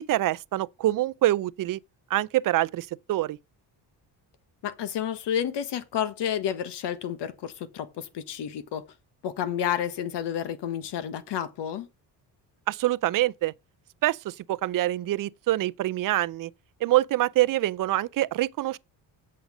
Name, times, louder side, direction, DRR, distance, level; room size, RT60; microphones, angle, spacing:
voice 1, 0.0-1.8 2.1-3.4 12.7-13.5 14.0-16.5 16.8-18.8, right 15 dB, 50° right, 0.5 m, -25 dB
voice 2, 4.6-8.8 9.2-11.9, left 9 dB, 70° left, 1.4 m, -30 dB
8.0 x 6.4 x 5.0 m
cardioid pair, 110°, 43 cm